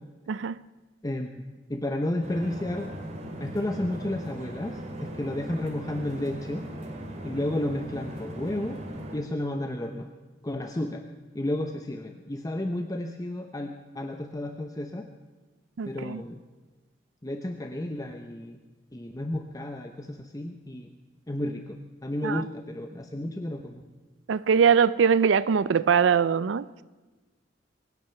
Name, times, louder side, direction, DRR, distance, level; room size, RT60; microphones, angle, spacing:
voice 1, 0.3-0.6 15.8-16.2 22.2-22.4 24.3-26.7, right 6 dB, 85° right, 0.4 m, -22 dB
voice 2, 1.7-2.9 3.4-6.7 7.2-8.8 9.1-10.1 10.4-11.1 11.3-15.1 15.8-16.4 17.2-18.6 18.9-20.9 21.3-23.8, left 1 dB, 20° left, 0.8 m, -32 dB
sound 1, 2.2-9.2, right 1 dB, 40° right, 2.3 m, -39 dB
23.5 x 9.5 x 5.8 m
head